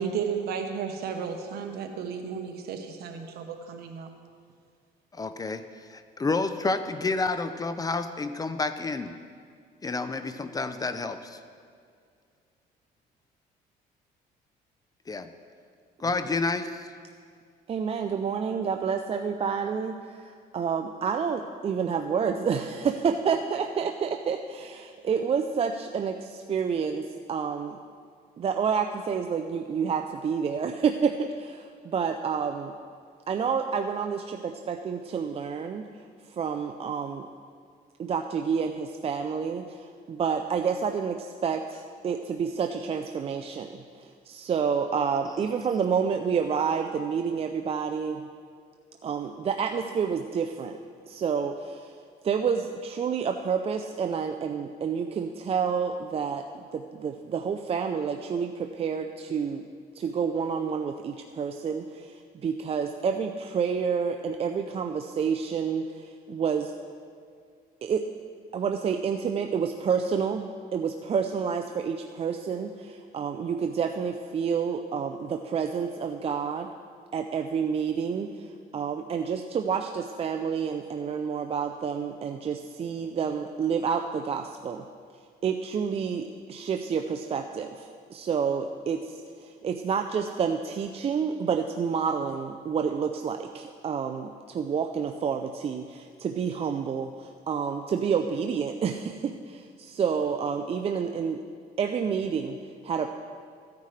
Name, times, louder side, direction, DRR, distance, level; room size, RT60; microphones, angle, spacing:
voice 1, 0.0-4.1, right 6 dB, 70° right, 5 dB, 1.2 m, -33 dB
voice 2, 5.1-5.6 5.9-9.2 9.8-11.4 15.1-15.3 16.0-16.9, left 3 dB, 20° left, 10 dB, 0.6 m, -29 dB
voice 3, 17.7-27.8 28.4-32.7 33.3-35.8 36.3-37.3 38.0-48.2 49.0-50.8 51.0-51.9 52.2-59.6 60.0-66.7 67.8-68.1 68.5-76.7 77.1-78.5 78.7-84.9 85.4-101.4 101.8-102.6 102.8-103.1, right 6 dB, 35° right, 5 dB, 0.5 m, -29 dB
15.5 x 9.4 x 3.3 m, 2.2 s
cardioid pair, 110°, 17 cm